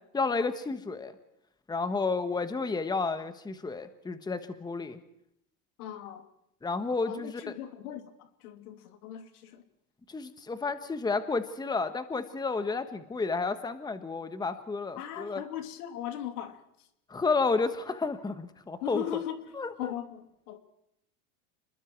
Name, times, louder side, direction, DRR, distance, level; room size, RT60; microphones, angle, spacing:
voice 1, 0.1-1.1 1.7-5.0 6.6-7.4 10.1-15.4 17.1-19.0 19.6-19.9, left 4 dB, 10° left, 1.4 m, -31 dB
voice 2, 5.8-6.3 7.0-9.6 15.0-16.9 18.8-20.6, left 11 dB, 75° left, 3.0 m, -39 dB
29.0 x 21.5 x 4.7 m
supercardioid pair, 125°, 45 cm